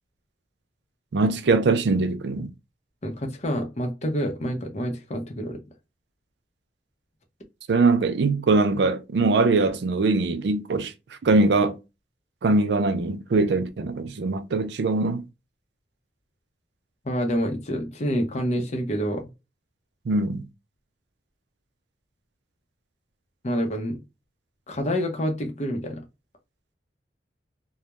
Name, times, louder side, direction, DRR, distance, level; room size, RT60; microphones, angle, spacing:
voice 1, 1.1-2.5 7.7-10.9 11.2-11.8 12.4-15.2 20.1-20.5, right 3 dB, 70° right, 0.4 m, -22 dB
voice 2, 3.0-5.6 17.0-19.3 23.4-24.0 24.7-26.0, equal, 40° left, 0.6 m, -27 dB
2.2 x 2.0 x 2.8 m
head